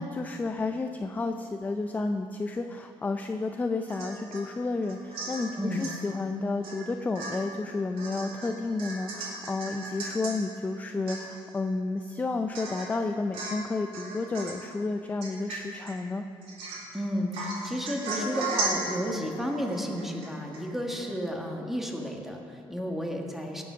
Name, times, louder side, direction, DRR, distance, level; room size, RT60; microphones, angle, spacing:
voice 1, 0.0-16.2, left 3 dB, 15° left, 6 dB, 0.5 m, -31 dB
Domestic sounds home sounds / Chink clink / Drip, 3.9-4.5 4.8-6.0 6.6-6.8 7.2-10.4 10.8-10.9 11.1-11.6 12.0-12.1 12.6-13.0 13.3-13.7 13.9-14.7 15.2-15.9 16.4-17.0 17.3-20.6 20.9-21.0, right 2 dB, 80° right, 3.7 m, -36 dB
voice 2, 16.9-23.6, equal, 5° right, 1 dB, 1.5 m, -32 dB
17.0 x 7.0 x 6.2 m, 2.5 s
cardioid pair, 130°, 10 cm